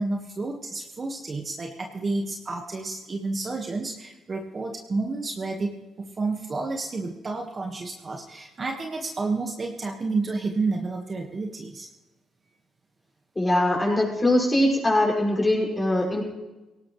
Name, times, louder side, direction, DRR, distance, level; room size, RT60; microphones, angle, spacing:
voice 1, 0.0-11.9, right 3 dB, 35° right, 2 dB, 1.6 m, -30 dB
voice 2, 13.3-16.2, left 1 dB, 20° left, -2 dB, 6.2 m, -22 dB
18.0 x 18.0 x 3.3 m, 1.1 s
cardioid pair, 90°, 0 cm